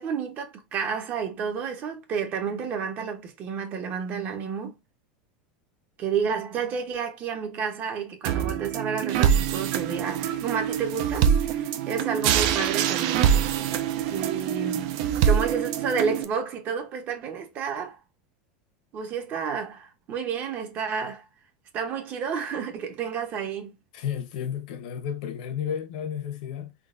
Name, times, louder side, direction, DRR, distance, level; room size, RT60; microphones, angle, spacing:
voice 1, 0.0-4.8 6.0-13.3 14.1-15.0 15.2-18.0 18.9-21.3 21.7-23.7, right 6 dB, 40° right, 0.9 m, -30 dB
sound 1, 8.2-16.2, right 9 dB, 60° right, 0.5 m, -24 dB
voice 2, 23.9-26.7, left 8 dB, 70° left, 0.8 m, -32 dB
3.8 x 2.3 x 2.5 m
supercardioid pair, 135°, 5 cm